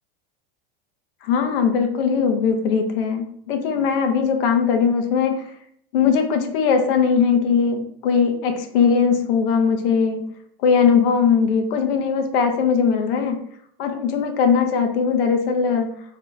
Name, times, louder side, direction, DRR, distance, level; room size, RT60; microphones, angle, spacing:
voice 1, 1.2-5.4 5.9-10.2 10.6-13.4 13.8-16.0, left 6 dB, 65° left, 5 dB, 0.7 m, -20 dB
3.3 x 2.8 x 3.4 m, 0.67 s
supercardioid pair, 150°, 30 cm